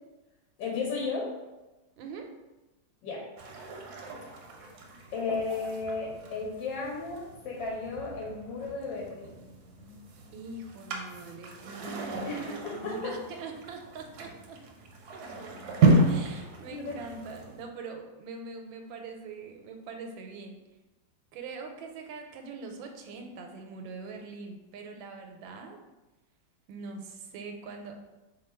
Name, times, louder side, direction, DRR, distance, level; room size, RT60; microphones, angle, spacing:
voice 1, 0.6-1.3 3.0-3.2 5.1-9.4 12.2-13.1 16.7-16.9, left 4 dB, 80° left, -4 dB, 1.4 m, -34 dB
voice 2, 2.0-2.3 10.3-14.6 15.1-15.6 16.0-20.6 21.3-25.8 26.7-28.0, right 4 dB, 90° right, 4 dB, 1.3 m, -43 dB
sound 1, 3.4-17.6, right 2 dB, 70° right, 1.0 m, -32 dB
3.2 x 2.2 x 4.3 m, 1.1 s
omnidirectional pair, 2.1 m